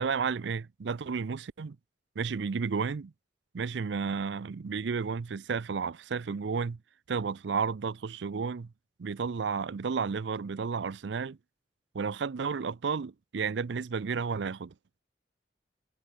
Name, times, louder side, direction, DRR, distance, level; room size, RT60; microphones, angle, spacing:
voice 1, 0.0-1.8 2.2-3.1 3.5-6.8 7.1-8.7 9.0-11.4 11.9-14.7, right 5 dB, 70° right, 0.5 m, -32 dB
head